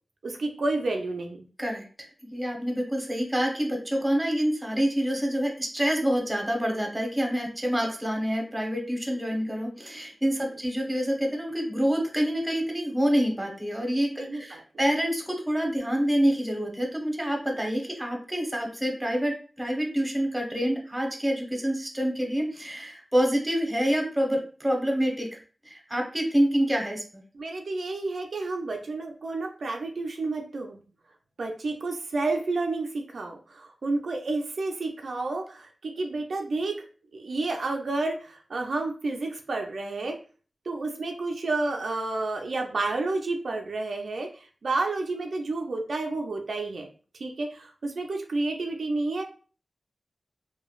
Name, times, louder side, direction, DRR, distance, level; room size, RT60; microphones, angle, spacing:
voice 1, 0.2-1.5 14.1-14.6 27.3-30.8 31.4-36.8 37.1-40.2 40.7-46.9 47.2-49.2, right 3 dB, 80° right, 2 dB, 0.4 m, -30 dB
voice 2, 1.6-25.3 25.6-27.0, equal, 10° right, 1 dB, 0.9 m, -27 dB
3.0 x 2.2 x 2.3 m, 0.38 s
wide cardioid pair, 60°, 0 cm